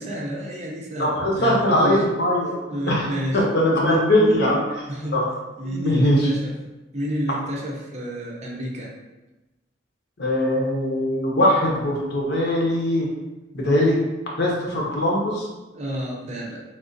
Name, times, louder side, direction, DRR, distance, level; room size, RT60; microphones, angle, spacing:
voice 1, 0.0-2.0 2.7-3.4 3.8-4.5 4.9-5.3 5.6-6.5 6.9-8.9 15.7-16.6, equal, 35° right, -2 dB, 0.5 m, -29 dB
voice 2, 1.0-2.5 2.9-4.6 5.1-5.3 5.6-6.4 10.2-13.1 13.5-14.0 14.4-15.5, left 1 dB, 60° left, -3 dB, 0.8 m, -21 dB
3.4 x 2.3 x 2.5 m, 1.1 s
head